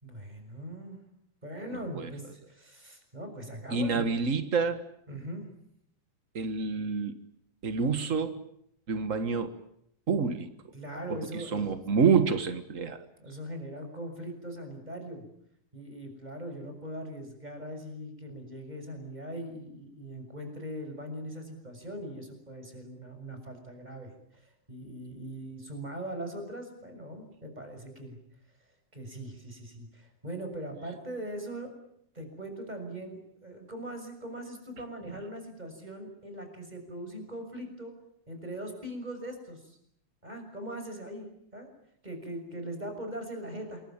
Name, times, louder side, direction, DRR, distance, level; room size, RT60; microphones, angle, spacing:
voice 1, 0.0-1.0 1.4-4.0 5.1-5.4 10.7-11.7 13.2-15.2 15.7-28.2 28.9-31.7 32.1-37.9 38.3-39.8 40.2-41.7 42.0-43.8, right 1 dB, 10° right, 6 dB, 6.4 m, -40 dB
voice 2, 3.7-4.8 6.3-7.1 7.6-8.4 8.9-9.5 10.1-10.5 11.1-13.0, right 5 dB, 90° right, 9 dB, 0.6 m, -27 dB
27.5 x 23.0 x 8.9 m, 0.73 s
omnidirectional pair, 4.1 m